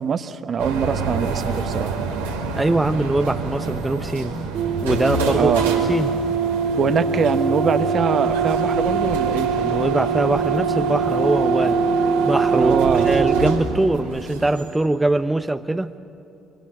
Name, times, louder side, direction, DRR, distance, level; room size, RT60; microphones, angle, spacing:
voice 1, 0.0-2.0 5.4-5.7 6.8-9.5 12.5-13.1, right 6 dB, 50° right, 1.1 m, -23 dB
sound 1, 0.6-15.2, right 4 dB, 90° right, 2.4 m, -29 dB
voice 2, 2.6-4.4 4.8-5.5 5.9-6.2 9.6-11.8 12.2-12.8 13.1-15.9, right 2 dB, 15° right, 0.8 m, -22 dB
sound 2, 4.5-13.6, right 5 dB, 65° right, 2.2 m, -22 dB
24.5 x 24.5 x 7.8 m
hypercardioid pair, 50°, 0 cm